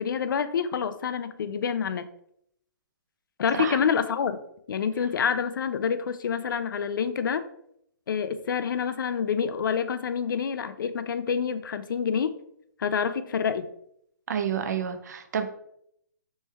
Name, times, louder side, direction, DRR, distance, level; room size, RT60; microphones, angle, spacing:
voice 1, 0.0-2.1 3.4-4.4 4.7-7.4 8.1-12.4 12.8-13.7, left 7 dB, 75° left, 11 dB, 0.4 m, -27 dB
voice 2, 14.3-15.5, right 7 dB, 55° right, 8 dB, 0.5 m, -29 dB
3.2 x 3.2 x 3.3 m, 0.73 s
hypercardioid pair, 165°, 11 cm